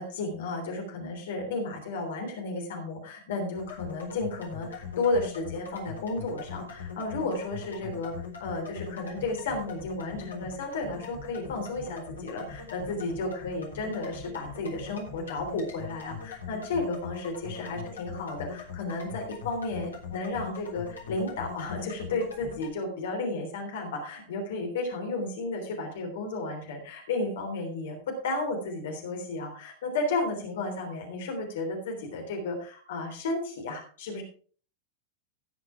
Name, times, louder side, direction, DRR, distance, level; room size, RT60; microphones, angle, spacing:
voice 1, 0.0-8.1 8.4-34.2, left 2 dB, 60° left, 2 dB, 3.4 m, -33 dB
sound 1, 3.5-22.7, left 6 dB, 75° left, 3.5 m, -41 dB
17.5 x 5.9 x 4.7 m, 0.43 s
figure-of-eight pair, 90°, 0 cm